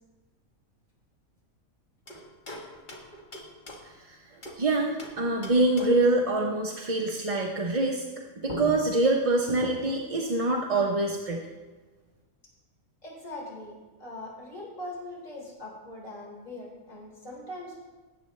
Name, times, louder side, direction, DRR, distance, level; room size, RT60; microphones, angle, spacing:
sound 1, 2.1-4.7 5.0-6.2 8.1-8.2 8.5-10.1, left 1 dB, 35° left, 1.4 m, -41 dB
voice 1, 3.8-8.0 8.4-11.5, right 2 dB, 30° right, 0 dB, 0.7 m, -25 dB
voice 2, 13.0-17.8, left 1 dB, 60° left, -5 dB, 4.1 m, -41 dB
17.5 x 7.7 x 3.2 m, 1.3 s
omnidirectional pair, 1.5 m